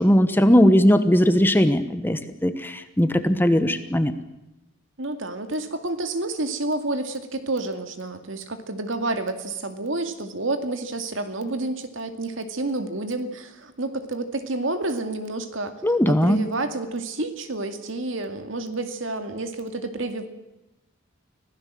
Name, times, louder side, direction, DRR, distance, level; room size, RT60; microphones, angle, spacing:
voice 1, 0.0-4.1 15.8-16.4, equal, 10° left, 10 dB, 1.1 m, -19 dB
voice 2, 5.0-15.7 16.1-20.3, right 2 dB, 65° right, 8 dB, 2.3 m, -29 dB
25.5 x 17.0 x 7.6 m, 0.97 s
head